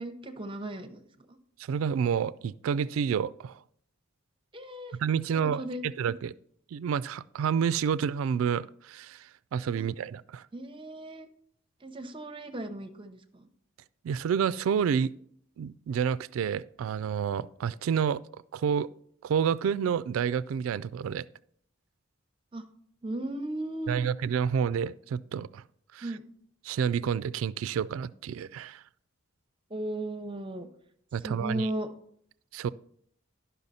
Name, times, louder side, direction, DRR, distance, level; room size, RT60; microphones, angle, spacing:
voice 1, 0.0-1.4 4.5-5.0 5.3-5.8 9.8-9.9 10.5-11.3 11.8-13.5 22.5-22.6 23.0-24.0 26.0-26.2 29.7-30.7 31.2-31.9, right 1 dB, 25° right, 0.7 m, -36 dB
voice 2, 1.7-3.6 5.0-6.3 6.7-10.4 14.0-15.1 15.6-18.2 18.5-18.9 19.2-21.3 23.9-25.6 25.9-26.0 26.6-28.8 31.1-31.7 32.5-32.7, right 7 dB, 75° right, 0.3 m, -29 dB
12.0 x 5.6 x 4.1 m
head